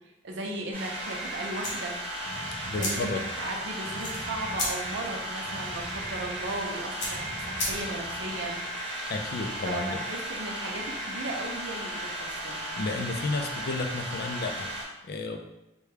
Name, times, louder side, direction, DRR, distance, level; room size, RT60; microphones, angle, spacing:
voice 1, 0.2-2.1 2.7-8.6 9.6-12.6, right 2 dB, 75° right, 1 dB, 0.6 m, -36 dB
sound 1, 0.7-14.8, right 1 dB, 30° right, 0.8 m, -35 dB
sound 2, 1.6-8.2, left 1 dB, 75° left, 1.0 m, -37 dB
sound 3, 2.2-8.5, equal, ahead, 0.6 m, -45 dB
voice 2, 2.6-3.2 9.1-10.0 12.8-15.4, left 3 dB, 55° left, 5 dB, 0.4 m, -32 dB
3.3 x 2.2 x 3.2 m, 0.91 s
head